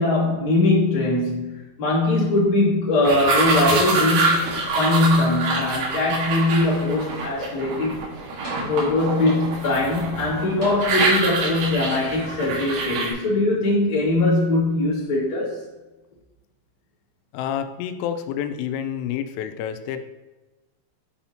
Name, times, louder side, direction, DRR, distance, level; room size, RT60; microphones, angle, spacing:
voice 1, 0.0-8.0 8.7-15.6, left 2 dB, 35° left, -7 dB, 1.9 m, -21 dB
sound 1, 3.1-13.1, right 3 dB, 85° right, 4.4 m, -25 dB
sound 2, 4.6-5.6 6.3-6.4 8.0-8.1 8.4-9.2 10.6-11.4 12.5-12.6, right 1 dB, 55° right, 0.9 m, -42 dB
voice 2, 17.3-20.0, left 9 dB, 85° left, 9 dB, 3.2 m, -28 dB
9.0 x 5.5 x 2.9 m, 1.1 s
omnidirectional pair, 5.8 m